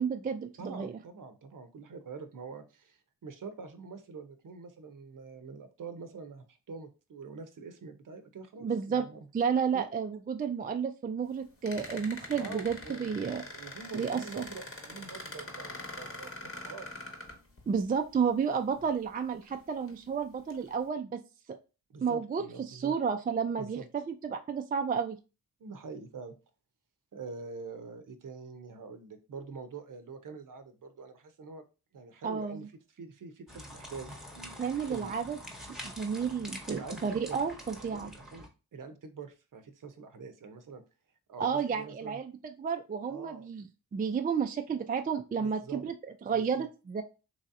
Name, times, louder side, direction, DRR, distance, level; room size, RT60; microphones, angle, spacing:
voice 1, 0.0-0.9 8.6-9.1 9.3-13.4 13.9-14.5 17.7-21.2 21.5-21.6 22.0-25.2 32.2-32.7 34.6-35.4 35.9-38.1 41.4-42.3 42.6-43.7 43.9-45.9 46.3-47.0, right 6 dB, 25° right, 6 dB, 0.3 m, -31 dB
voice 2, 0.6-9.2 9.7-9.9 12.3-16.9 21.9-23.0 23.5-23.9 25.6-26.3 27.1-31.6 31.9-32.6 33.0-35.2 36.7-37.4 37.8-38.5 38.7-40.8 41.3-42.2 43.1-43.5 45.4-45.8 46.3-46.7, right 4 dB, 50° right, 8 dB, 0.7 m, -45 dB
sound 1, 11.7-17.9 18.8-18.9 19.4-19.9 20.5-20.7, left 2 dB, 35° left, 1.0 m, -44 dB
sound 2, 33.5-38.5, equal, ahead, 0.9 m, -46 dB
3.1 x 2.7 x 2.5 m, 0.31 s
supercardioid pair, 45°, 40 cm